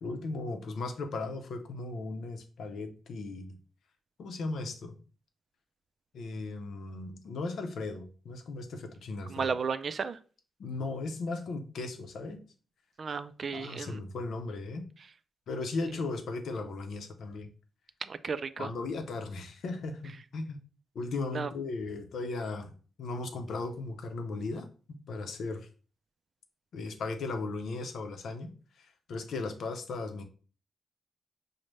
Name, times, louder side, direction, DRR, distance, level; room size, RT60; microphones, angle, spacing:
voice 1, 0.0-3.6 4.2-5.0 6.1-9.5 10.6-12.4 13.5-14.8 15.5-17.5 18.6-20.6 20.9-22.7 23.0-24.7 25.1-25.7 26.7-28.5 28.8-30.2, left 3 dB, 75° left, 0.6 m, -37 dB
voice 2, 9.3-10.2 13.0-14.0 18.1-18.7 21.3-21.5, right 5 dB, 50° right, 0.3 m, -33 dB
5.2 x 2.1 x 3.2 m
cardioid pair, 90°, 0 cm